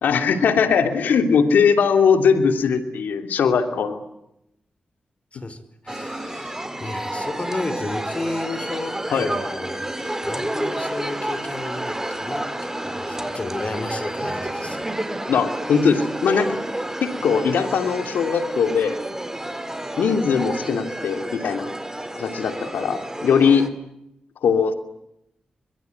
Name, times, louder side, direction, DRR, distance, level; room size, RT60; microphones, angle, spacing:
voice 1, 0.0-4.0 9.1-9.3 15.3-16.6 17.0-19.0 20.0-21.7 22.1-23.6 24.4-24.7, left 6 dB, 85° left, 8 dB, 3.0 m, -20 dB
voice 2, 5.3-14.9, left 2 dB, 40° left, 13 dB, 5.1 m, -33 dB
sound 1, 5.9-23.7, right 1 dB, 15° right, 4.4 m, -30 dB
24.5 x 23.0 x 9.6 m, 0.83 s
cardioid pair, 45°, 3 cm